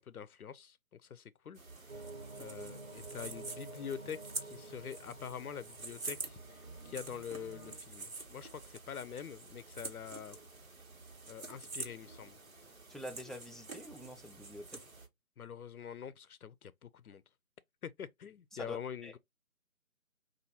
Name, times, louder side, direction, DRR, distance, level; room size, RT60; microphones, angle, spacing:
voice 1, 0.0-2.1 2.4-10.4 11.3-12.4 15.4-17.2 17.8-19.2, left 8 dB, 80° left, 0.5 m, -45 dB
sound 1, 1.5-15.1, right 3 dB, 65° right, 1.6 m, -47 dB
sound 2, 1.9-7.8, right 2 dB, 35° right, 1.5 m, -50 dB
voice 2, 12.9-14.8 18.5-19.1, left 1 dB, ahead, 0.3 m, -46 dB
5.4 x 2.6 x 2.7 m
figure-of-eight pair, 160°, 44 cm